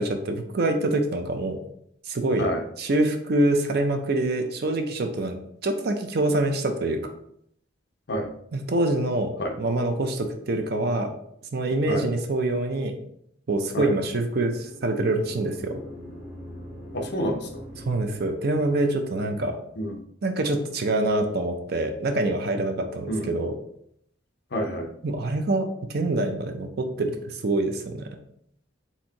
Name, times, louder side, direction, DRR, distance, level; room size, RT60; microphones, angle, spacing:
voice 1, 0.0-1.6 2.1-2.5 2.8-5.4 5.6-7.0 8.5-11.1 11.5-12.9 13.5-15.8 17.9-19.6 20.2-23.5 25.0-28.2, right 2 dB, 55° right, 6 dB, 0.6 m, -25 dB
sound 1, 14.1-19.1, equal, ahead, 1.3 m, -43 dB
voice 2, 16.9-17.6 19.8-20.0 23.1-23.3 24.5-24.9, equal, 60° left, 3 dB, 0.7 m, -28 dB
4.4 x 3.6 x 2.9 m, 0.71 s
head